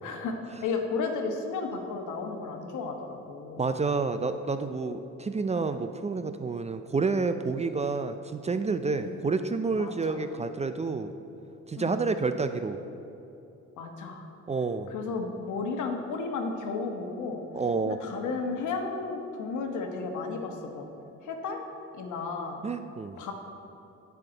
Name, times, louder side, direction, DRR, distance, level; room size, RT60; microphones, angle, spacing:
voice 1, 0.0-0.4 0.6-3.7 8.9-9.1 9.8-10.2 11.7-12.0 13.8-14.3 14.9-17.4 17.8-20.9 21.2-21.6 21.9-22.6 23.2-23.3, left 4 dB, 80° left, 3 dB, 1.3 m, -33 dB
voice 2, 3.6-11.1 11.7-12.8 14.5-14.9 17.6-18.0 22.6-23.2, right 4 dB, 20° right, 9 dB, 0.4 m, -29 dB
16.5 x 5.8 x 3.9 m, 2.8 s
cardioid pair, 90°, 30 cm